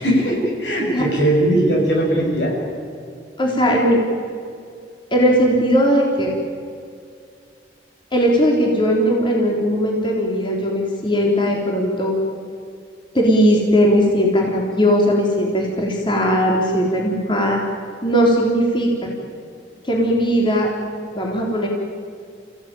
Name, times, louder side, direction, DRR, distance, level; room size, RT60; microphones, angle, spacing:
voice 1, 0.0-2.5, right 1 dB, 80° left, -1 dB, 7.6 m, -19 dB
voice 2, 3.4-4.0 5.1-6.3 8.1-12.1 13.1-17.6 18.0-19.1 19.8-20.7 21.1-21.7, equal, 30° left, -1 dB, 3.6 m, -18 dB
29.5 x 16.5 x 9.2 m, 2.3 s
head